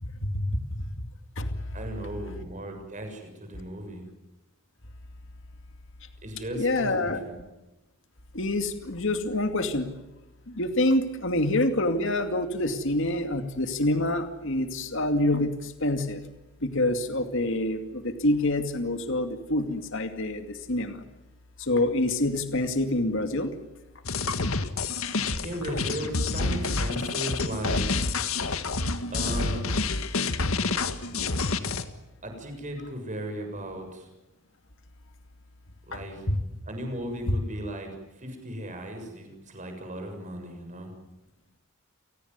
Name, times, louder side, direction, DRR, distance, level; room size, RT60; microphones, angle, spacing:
voice 1, 0.0-0.8 1.4-1.5 6.5-7.2 8.3-9.9 10.5-16.2 16.6-21.0 21.6-23.5 36.3-36.4 37.3-37.4, left 1 dB, 65° left, 7 dB, 2.4 m, -26 dB
voice 2, 1.7-4.1 6.2-7.4 25.4-27.9 29.1-29.7 32.2-34.1 35.9-36.2 36.7-37.9 38.2-40.9, right 1 dB, 35° right, 5 dB, 7.1 m, -36 dB
sound 1, 24.0-31.8, left 3 dB, 85° left, 1.8 m, -28 dB
30.0 x 19.0 x 9.7 m, 1.0 s
head